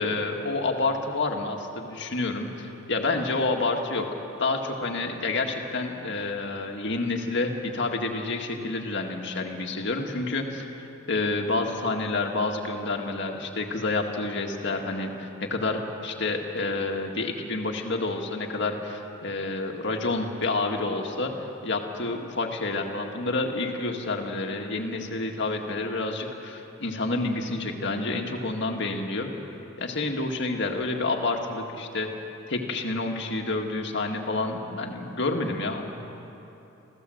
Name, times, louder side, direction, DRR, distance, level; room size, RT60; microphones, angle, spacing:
voice 1, 0.0-4.1 4.4-10.7 11.1-29.3 29.8-32.1 32.5-35.9, left 3 dB, 60° left, 3 dB, 1.9 m, -29 dB
27.5 x 16.0 x 7.9 m, 3.0 s
head